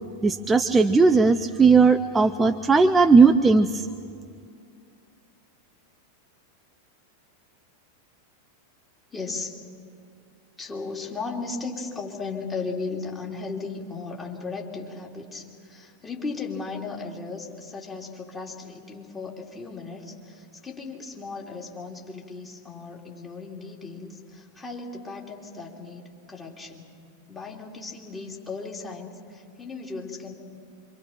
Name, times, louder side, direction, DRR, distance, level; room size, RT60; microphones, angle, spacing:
voice 1, 0.2-3.9, right 4 dB, 15° right, 9 dB, 0.6 m, -17 dB
voice 2, 9.1-9.6 10.6-26.9 27.3-30.3, left 4 dB, 15° left, -1 dB, 3.1 m, -36 dB
26.5 x 24.5 x 5.9 m, 2.3 s
figure-of-eight pair, 90°, 0 cm